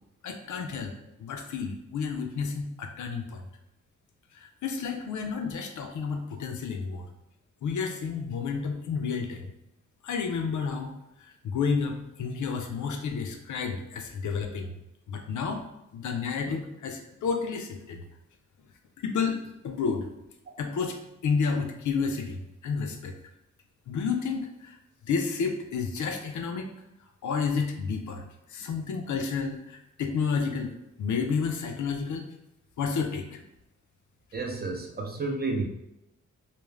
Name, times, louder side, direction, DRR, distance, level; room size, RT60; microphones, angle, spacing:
voice 1, 0.2-3.4 4.3-7.1 7.6-9.5 10.0-10.9 11.4-14.7 15.1-15.6 15.9-18.0 19.0-20.1 20.6-21.0 21.2-23.1 23.9-24.8 25.0-26.7 27.2-28.2 28.5-30.7 31.0-32.3 32.8-33.4, left 5 dB, 75° left, 4 dB, 0.5 m, -30 dB
voice 2, 34.3-35.6, right 3 dB, 30° right, 1 dB, 0.5 m, -31 dB
2.4 x 2.0 x 3.1 m, 0.88 s
cardioid pair, 80°, 30 cm